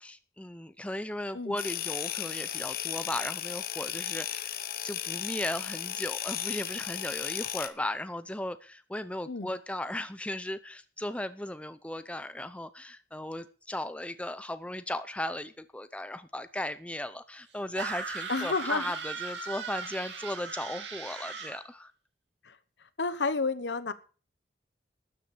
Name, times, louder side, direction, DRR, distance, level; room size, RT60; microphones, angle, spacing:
voice 1, 0.0-4.6 4.8-21.9, left 1 dB, 5° left, 12 dB, 0.6 m, -36 dB
sound 1, 1.6-7.7, left 11 dB, 55° left, 1.0 m, -35 dB
sound 2, 17.7-21.6, right 5 dB, 85° right, 2.6 m, -38 dB
voice 2, 18.3-18.9 22.4-22.6 23.0-23.9, left 4 dB, 85° left, 14 dB, 1.0 m, -30 dB
12.5 x 7.5 x 6.8 m, 0.38 s
head